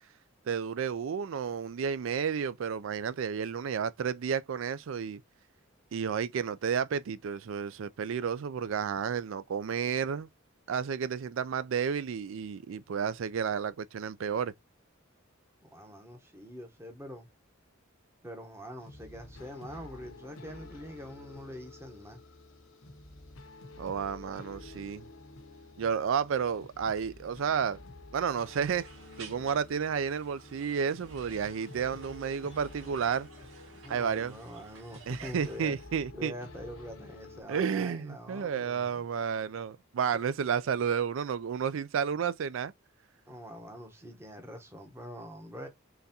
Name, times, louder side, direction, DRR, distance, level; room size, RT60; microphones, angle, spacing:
voice 1, 0.5-5.2 5.9-10.3 10.7-14.5 23.8-25.1 25.8-27.8 28.1-28.9 29.2-33.3 33.9-34.4 35.1-36.3 37.5-42.7, right 7 dB, 70° right, 0.4 m, -31 dB
voice 2, 15.7-17.3 18.2-22.2 33.7-35.8 36.1-39.0 43.3-45.7, equal, 10° right, 0.8 m, -44 dB
sound 1, 18.8-37.4, left 2 dB, 80° left, 0.8 m, -50 dB
sound 2, 28.4-35.6, right 4 dB, 90° right, 1.6 m, -53 dB
3.9 x 3.4 x 2.7 m
head